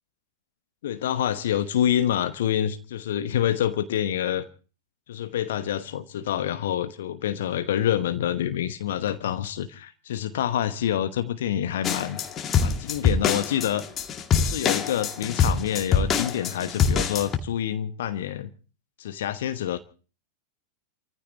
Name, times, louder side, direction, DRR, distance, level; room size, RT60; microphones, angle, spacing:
voice 1, 0.8-4.5 5.1-12.2 12.6-13.8 14.3-18.5 19.0-19.8, left 10 dB, 60° left, 1.1 m, -27 dB
sound 1, 11.8-17.4, left 6 dB, 25° left, 2.1 m, -24 dB
30.0 x 15.0 x 3.0 m
figure-of-eight pair, 90°, 0 cm